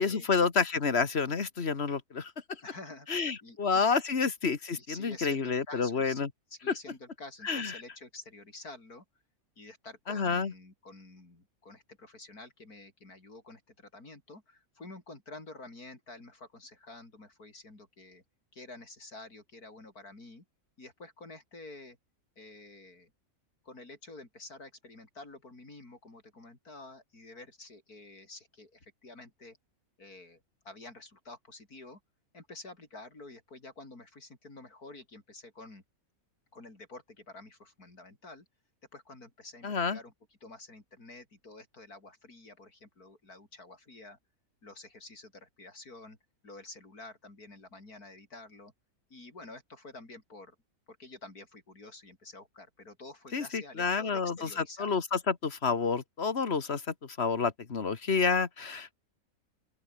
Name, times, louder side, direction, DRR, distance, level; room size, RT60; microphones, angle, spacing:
voice 1, 0.0-2.3 3.1-6.3 7.4-7.7 10.1-10.5 39.6-40.0 53.3-59.0, left 5 dB, 45° left, 1.8 m, -29 dB
voice 2, 2.6-3.8 4.8-6.2 6.5-9.0 9.6-18.2 18.5-20.4 20.8-22.0 22.4-23.1 23.6-29.6 30.0-32.0 32.3-35.8 36.5-38.5 38.9-40.1 40.4-44.2 44.6-46.2 46.4-48.7 49.1-50.6 50.9-54.9, left 2 dB, 85° left, 6.0 m, -49 dB
open air
omnidirectional pair, 1.6 m